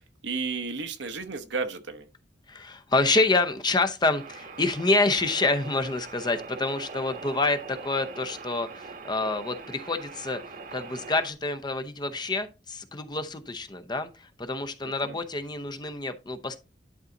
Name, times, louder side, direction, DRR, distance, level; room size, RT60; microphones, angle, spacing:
voice 1, 0.2-2.1 14.8-15.2, right 4 dB, 80° right, 1.1 m, -33 dB
voice 2, 2.5-10.4 10.7-16.6, left 3 dB, 25° left, 0.7 m, -27 dB
sound 1, 4.1-11.3, right 4 dB, 50° right, 1.2 m, -42 dB
11.0 x 4.0 x 3.9 m
head